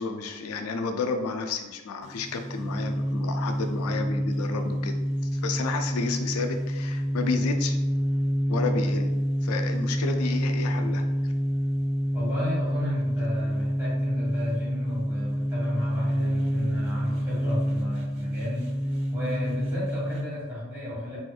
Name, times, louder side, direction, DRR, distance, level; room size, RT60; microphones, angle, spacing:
voice 1, 0.0-4.9 5.3-7.8 8.5-9.1 9.4-11.3, left 4 dB, 90° left, 6 dB, 0.4 m, -31 dB
sound 1, 2.0-20.3, equal, 75° right, 0.7 m, -27 dB
voice 2, 12.1-18.7 19.1-21.2, left 1 dB, 10° right, -9 dB, 1.5 m, -33 dB
4.1 x 2.4 x 2.3 m, 1.2 s
head